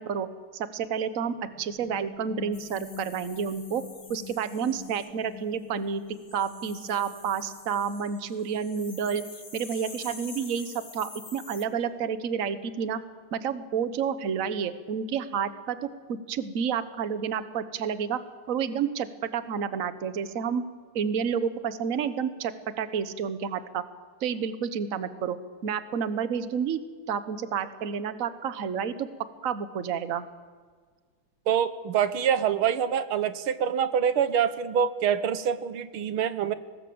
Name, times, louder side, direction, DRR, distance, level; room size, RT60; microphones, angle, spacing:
voice 1, 0.0-3.8 4.1-6.0 6.3-9.2 9.5-13.0 13.3-18.2 18.5-20.6 20.9-23.8 24.2-25.4 25.6-26.8 27.1-29.1 29.4-30.2, right 7 dB, 45° right, 12 dB, 1.3 m, -30 dB
sound 1, 1.3-9.1, left 11 dB, 85° left, 2.9 m, -47 dB
sound 2, 2.5-5.1 6.1-11.6, left 3 dB, 25° left, 1.6 m, -47 dB
voice 2, 31.5-36.5, right 8 dB, 80° right, 13 dB, 1.9 m, -25 dB
23.5 x 20.0 x 7.9 m, 1.6 s
omnidirectional pair, 2.4 m